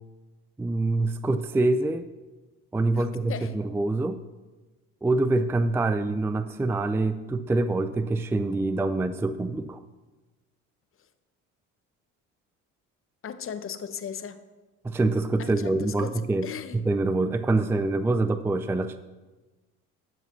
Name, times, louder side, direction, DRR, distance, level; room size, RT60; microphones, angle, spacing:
voice 1, 0.6-2.1 2.7-4.2 5.0-9.8 14.8-16.5 16.7-19.0, right 2 dB, 5° right, 11 dB, 0.4 m, -25 dB
voice 2, 2.9-3.5 13.2-14.4 15.4-16.8, left 7 dB, 40° left, 11 dB, 0.9 m, -37 dB
13.5 x 4.9 x 6.1 m, 1.2 s
supercardioid pair, 85°, 33 cm